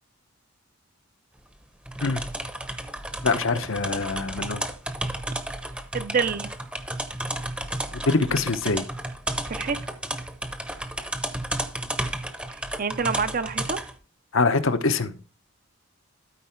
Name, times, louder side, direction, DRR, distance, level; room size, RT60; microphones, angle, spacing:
sound 1, 1.9-13.9, right 1 dB, 5° right, 0.8 m, -32 dB
voice 1, 3.2-4.6 7.9-8.9 14.3-15.2, left 3 dB, 65° left, 9 dB, 0.9 m, -24 dB
voice 2, 5.9-6.5 9.5-9.8 12.5-13.8, right 5 dB, 40° right, 12 dB, 0.6 m, -27 dB
12.5 x 4.7 x 4.4 m, 0.37 s
head